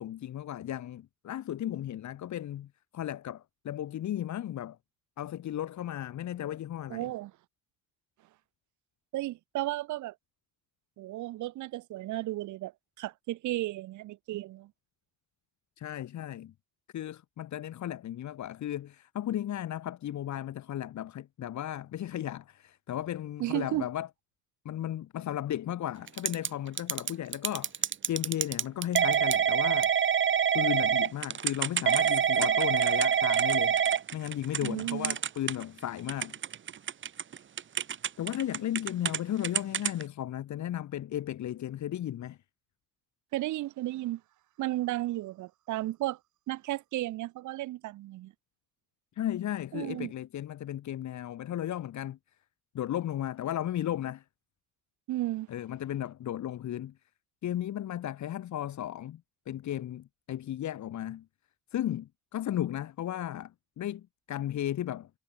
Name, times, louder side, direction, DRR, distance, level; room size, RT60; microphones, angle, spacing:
voice 1, 0.0-4.8 5.2-7.1 15.8-16.5 16.9-24.1 24.6-29.9 30.5-33.8 34.1-36.3 38.2-42.4 49.1-52.2 52.7-54.2 55.5-57.0 57.4-61.3 61.7-65.1, left 12 dB, 70° left, 2.1 m, -35 dB
voice 2, 6.9-7.3 9.1-10.1 11.0-12.7 13.0-14.7 23.4-23.9 34.6-35.2 43.3-44.2 44.6-46.2 46.5-48.3 49.7-50.1 55.1-55.5, right 16 dB, 75° right, 0.7 m, -34 dB
Typing / Telephone, 26.1-26.5 26.8-35.8 36.1-39.2 39.4-40.0, right 8 dB, 40° right, 0.8 m, -26 dB
cardioid pair, 90°, 30 cm